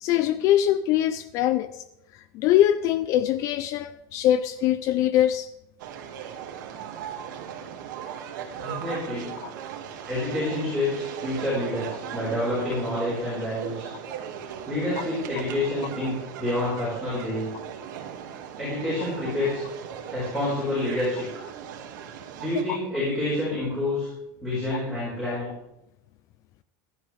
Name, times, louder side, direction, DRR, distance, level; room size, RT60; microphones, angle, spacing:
voice 1, 0.0-1.8 2.3-5.5 9.4-9.5, left 12 dB, 35° left, 0.3 m, -22 dB
sound 1, 5.8-22.6, right 9 dB, 80° right, 1.8 m, -38 dB
voice 2, 8.5-9.3 10.0-13.9 14.7-17.5 18.6-19.6 20.1-21.4 22.4-24.1 24.4-25.5, left 1 dB, 5° left, 4.9 m, -28 dB
15.5 x 11.5 x 3.3 m
supercardioid pair, 175°, 10 cm